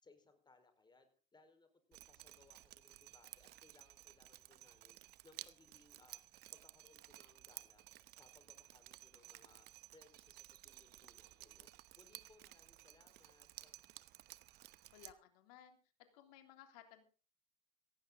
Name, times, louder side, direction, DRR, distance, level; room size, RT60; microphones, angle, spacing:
voice 1, 0.0-5.0 5.2-6.2 6.5-7.9 8.2-9.7 9.9-11.7 11.9-13.7, left 3 dB, 20° left, 8 dB, 4.6 m, -68 dB
Drip, 1.9-15.1, right 16 dB, 50° right, 1.0 m, -56 dB
voice 2, 14.9-15.8 16.1-17.0, left 10 dB, 70° left, 7 dB, 3.3 m, -59 dB
17.0 x 15.5 x 3.9 m, 0.36 s
hypercardioid pair, 75°, 21 cm